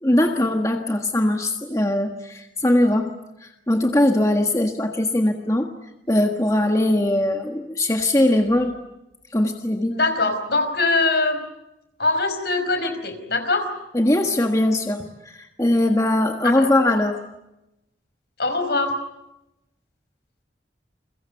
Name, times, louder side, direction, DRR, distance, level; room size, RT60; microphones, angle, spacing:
voice 1, 0.0-3.1 3.4-5.7 6.1-8.7 9.3-10.0 13.9-17.2, left 1 dB, 20° left, 4 dB, 1.5 m, -21 dB
voice 2, 9.9-11.4 12.0-13.7 16.6-16.7 18.4-18.9, left 3 dB, 60° left, 8 dB, 5.0 m, -22 dB
30.0 x 23.0 x 8.3 m, 0.92 s
head